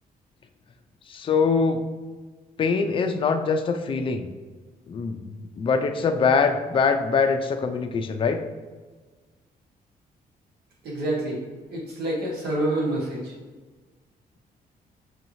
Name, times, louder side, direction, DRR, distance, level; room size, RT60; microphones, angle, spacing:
voice 1, 1.1-1.8 2.6-4.3 4.9-8.4, left 5 dB, 35° left, 6 dB, 0.4 m, -23 dB
voice 2, 10.8-11.4 11.7-13.2, right 1 dB, 80° right, -3 dB, 1.4 m, -27 dB
5.5 x 2.9 x 2.6 m, 1.3 s
cardioid pair, 125°, 16 cm